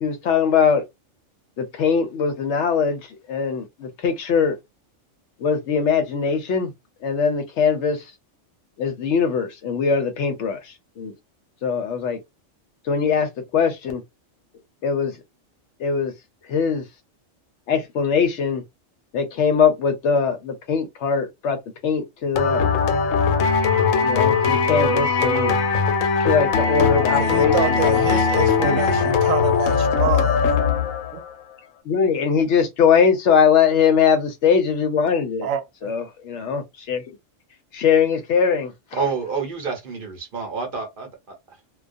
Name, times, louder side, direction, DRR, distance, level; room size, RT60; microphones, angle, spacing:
voice 1, 0.0-0.8 1.6-3.0 3.3-4.6 5.4-6.7 7.0-8.0 8.8-11.1 11.6-12.2 12.9-14.0 14.8-15.2 15.8-16.1 16.5-16.8 17.7-18.6 19.1-21.6 21.8-22.6 24.0-25.5 26.2-28.0 28.6-29.2 31.9-35.5 35.8-37.0 37.7-38.7, left 6 dB, 70° left, 0.9 m, -21 dB
sound 1, 22.4-31.3, left 5 dB, 90° left, 1.0 m, -20 dB
voice 2, 27.2-30.5 31.1-31.2 35.4-35.9, right 8 dB, 85° right, 1.0 m, -27 dB
voice 3, 38.9-41.1, right 5 dB, 45° right, 0.9 m, -27 dB
2.3 x 2.3 x 2.5 m
omnidirectional pair, 1.3 m